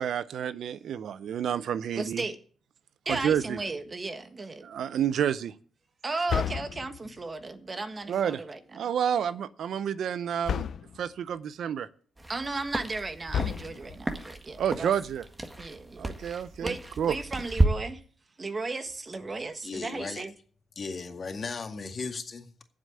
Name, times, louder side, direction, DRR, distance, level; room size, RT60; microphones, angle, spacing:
voice 1, 0.0-2.2 3.1-3.6 4.6-5.5 8.1-8.4 8.7-10.6 11.0-11.9 14.6-15.2 16.0-17.1, right 9 dB, 75° right, 0.6 m, -29 dB
voice 2, 1.9-2.4 3.0-4.7 6.0-8.9 12.3-14.9 15.6-16.1 16.6-18.0 18.4-20.3, right 3 dB, 35° right, 1.5 m, -35 dB
sound 1, 3.1-3.7 6.3-7.2 10.5-11.1 13.3-14.1, left 8 dB, 65° left, 0.6 m, -33 dB
sound 2, 12.2-17.7, right 2 dB, 20° right, 1.7 m, -32 dB
voice 3, 19.6-20.3 20.8-22.6, left 4 dB, 45° left, 2.0 m, -36 dB
8.7 x 7.6 x 8.7 m
cardioid pair, 80°, 0 cm